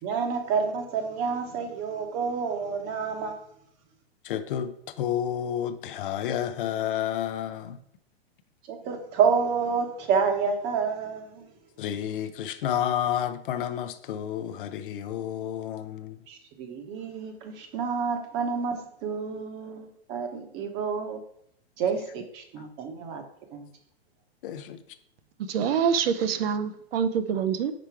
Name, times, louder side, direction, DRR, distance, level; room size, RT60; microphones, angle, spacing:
voice 1, 0.0-3.4 8.7-11.5 16.3-21.2 21.8-23.2 23.5-23.7, right 6 dB, 35° right, 1.0 m, -29 dB
voice 2, 4.2-7.8 11.8-16.2 22.6-22.7 24.4-24.8, left 10 dB, 55° left, 0.6 m, -30 dB
voice 3, 25.5-27.7, right 7 dB, 65° right, 0.6 m, -25 dB
5.1 x 4.5 x 4.6 m
hypercardioid pair, 135°, 32 cm